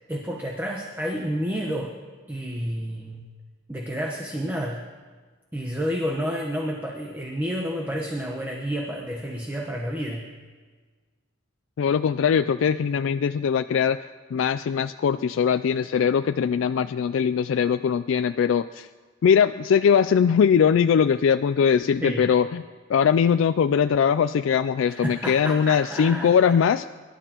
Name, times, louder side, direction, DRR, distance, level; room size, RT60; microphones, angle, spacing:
voice 1, 0.1-1.9 2.3-3.2 3.7-4.8 5.5-10.3 22.0-22.3 24.9-26.6, equal, 10° right, 0 dB, 1.0 m, -30 dB
voice 2, 11.8-14.0 14.3-18.9 19.2-22.6 22.9-26.9, left 7 dB, 85° left, 12 dB, 0.3 m, -21 dB
25.0 x 12.0 x 3.0 m, 1.5 s
head